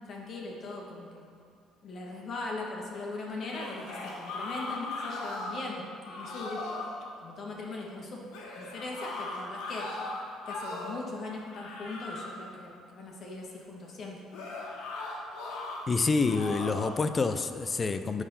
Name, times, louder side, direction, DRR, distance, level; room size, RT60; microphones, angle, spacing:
voice 1, 0.1-1.2 1.8-6.7 7.2-8.2 8.5-10.1 10.4-14.2, left 3 dB, 55° left, -1 dB, 1.6 m, -40 dB
sound 1, 3.3-5.7 6.0-6.9 8.3-11.0 11.5-12.4 14.3-15.8 16.2-17.0, left 2 dB, 80° left, 1.4 m, -38 dB
voice 2, 15.9-18.2, left 4 dB, 30° left, 10 dB, 0.4 m, -27 dB
11.0 x 3.7 x 5.6 m, 2.2 s
supercardioid pair, 80°, 0 cm